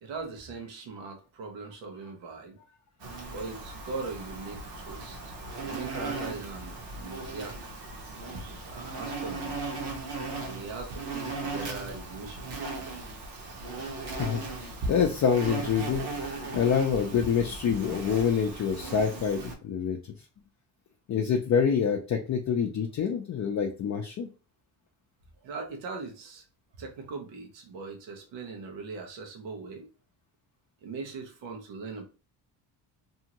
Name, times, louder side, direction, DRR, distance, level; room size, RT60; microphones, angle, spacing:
voice 1, 0.0-2.6 3.3-5.3 5.6-7.7 8.7-9.7 10.4-12.5 25.4-26.4 26.7-29.9 30.8-32.0, right 4 dB, 90° right, 3 dB, 0.9 m, -40 dB
Insect, 3.0-19.5, right 3 dB, 60° right, 1.0 m, -37 dB
voice 2, 14.1-16.0 16.5-20.0 21.1-24.3, left 7 dB, 40° left, 2 dB, 0.5 m, -26 dB
2.7 x 2.5 x 2.9 m, 0.33 s
cardioid pair, 90°, 43 cm